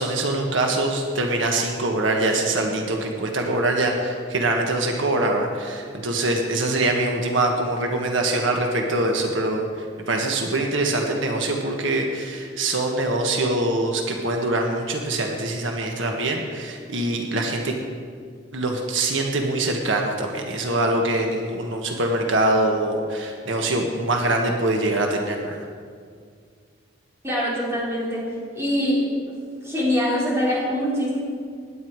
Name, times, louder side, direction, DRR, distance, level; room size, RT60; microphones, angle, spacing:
voice 1, 0.0-17.8 18.5-25.6, right 2 dB, 90° right, 2 dB, 1.5 m, -24 dB
voice 2, 27.2-28.2 28.5-29.3 29.6-31.2, equal, 15° right, -6 dB, 4.0 m, -23 dB
17.0 x 10.5 x 4.7 m, 2.1 s
head